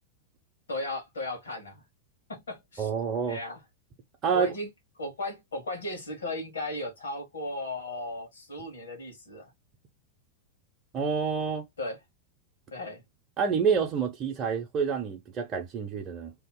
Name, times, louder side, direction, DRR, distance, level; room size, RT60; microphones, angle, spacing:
voice 1, 0.7-1.8 2.3-2.9 3.3-3.6 4.3-4.7 5.0-9.5 11.8-12.0 12.7-13.0, left 2 dB, 75° left, 1.3 m, -36 dB
voice 2, 2.8-3.4 4.2-4.5 10.9-11.6 13.4-16.3, right 6 dB, 30° right, 0.8 m, -28 dB
2.9 x 2.0 x 3.8 m
figure-of-eight pair, 95°, 0 cm